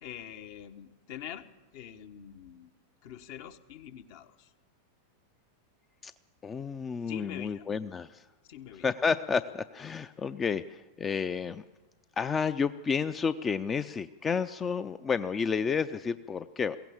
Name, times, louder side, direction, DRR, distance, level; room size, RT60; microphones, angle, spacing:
voice 1, 0.0-1.5 1.7-2.7 3.0-4.5 7.1-7.7 8.5-8.9, left 10 dB, 50° left, 10 dB, 1.2 m, -44 dB
voice 2, 6.4-8.2 8.8-11.6 12.2-16.8, left 6 dB, 20° left, 13 dB, 0.6 m, -31 dB
22.0 x 17.0 x 7.2 m, 1.2 s
figure-of-eight pair, 90°, 0 cm